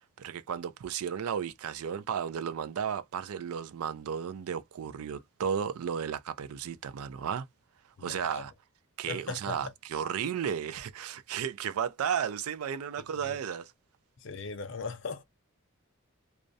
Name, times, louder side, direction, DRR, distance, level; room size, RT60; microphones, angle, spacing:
voice 1, 0.2-7.5 8.0-8.5 9.0-13.7, right 8 dB, 80° right, 0.4 m, -34 dB
voice 2, 8.0-8.5 9.1-9.7 13.2-13.4 14.2-15.2, left 4 dB, 55° left, 0.5 m, -39 dB
2.4 x 2.0 x 2.6 m
head